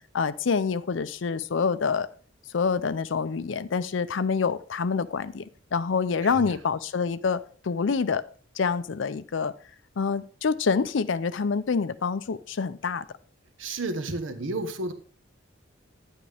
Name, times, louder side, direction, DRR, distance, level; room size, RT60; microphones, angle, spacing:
voice 1, 0.1-2.1 2.5-5.4 5.7-8.2 8.6-9.5 10.0-13.0, left 5 dB, 70° left, 14 dB, 0.5 m, -26 dB
voice 2, 6.2-6.6 13.6-14.9, right 2 dB, 75° right, 9 dB, 1.1 m, -32 dB
10.5 x 8.5 x 3.4 m, 0.41 s
head